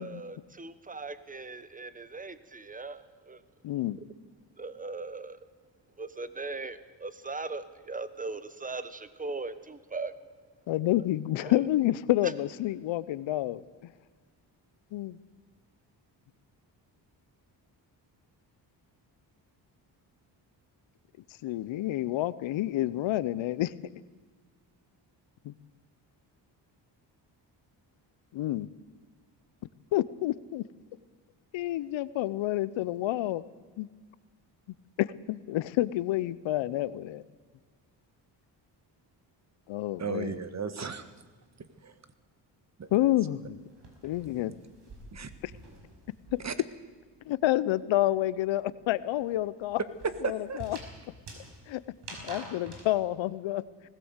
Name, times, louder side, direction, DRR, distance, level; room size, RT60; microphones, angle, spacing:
voice 1, 0.0-3.4 4.6-5.4 6.0-10.1 11.4-11.5, right 3 dB, 20° right, 1.2 m, -39 dB
voice 2, 3.6-4.0 10.7-13.6 14.9-15.2 21.4-23.7 25.4-25.5 28.3-28.7 29.9-30.6 31.5-33.4 33.8-33.9 35.0-37.2 39.7-40.3 42.9-43.6 44.0-44.5 46.3-46.4 47.3-49.8 50.2-50.8 51.7-51.8 52.2-53.6, left 15 dB, 85° left, 0.8 m, -29 dB
voice 3, 40.0-41.2 41.6-42.0 42.8-43.1 44.3-44.5 45.1-45.3 46.4-46.5 50.0-50.8, right 5 dB, 35° right, 1.6 m, -36 dB
sound 1, 43.0-46.7 47.0-52.9, right 2 dB, 65° right, 5.5 m, -48 dB
19.5 x 16.5 x 8.1 m
cardioid pair, 85°, 45 cm